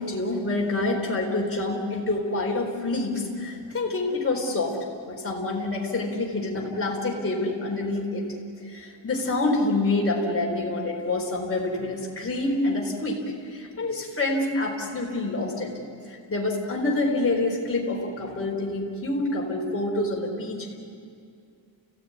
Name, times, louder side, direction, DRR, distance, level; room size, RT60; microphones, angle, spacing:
voice 1, 0.0-4.8 5.1-8.2 8.6-15.7 16.1-20.8, left 2 dB, 30° left, -2 dB, 4.4 m, -27 dB
30.0 x 16.5 x 9.8 m, 2.4 s
wide cardioid pair, 165°, 47 cm